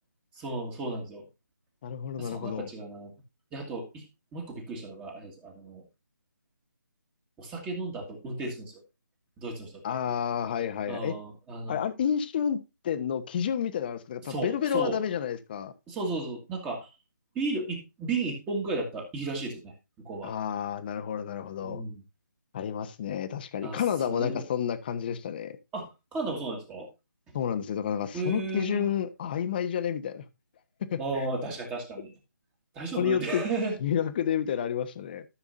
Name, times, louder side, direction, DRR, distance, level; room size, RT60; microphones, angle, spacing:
voice 1, 0.3-1.3 2.2-3.1 3.5-4.0 4.3-5.8 7.4-8.8 9.4-9.8 10.9-11.8 14.2-15.0 15.9-16.9 17.4-20.3 21.6-22.0 23.6-23.8 24.1-24.5 25.7-26.9 28.1-28.9 31.0-32.1 32.7-33.8, right 3 dB, 10° right, 1.9 m, -34 dB
voice 2, 1.8-2.7 9.8-11.1 11.7-12.6 12.8-15.7 20.2-21.8 22.5-25.6 27.3-30.2 30.9-31.3 33.0-33.4 33.8-35.2, left 8 dB, 30° left, 1.1 m, -30 dB
14.0 x 7.0 x 2.6 m
figure-of-eight pair, 155°, 11 cm